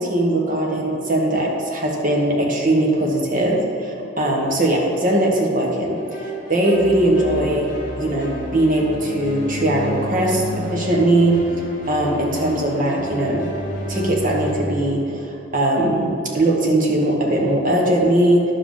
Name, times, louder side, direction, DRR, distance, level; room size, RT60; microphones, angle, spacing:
voice 1, 0.0-7.7 7.9-13.5 13.9-15.2 15.5-18.4, right 1 dB, 45° right, -1 dB, 1.4 m, -20 dB
sound 1, 6.0-14.5, left 1 dB, 45° left, 2.2 m, -31 dB
10.5 x 7.4 x 3.8 m, 2.9 s
head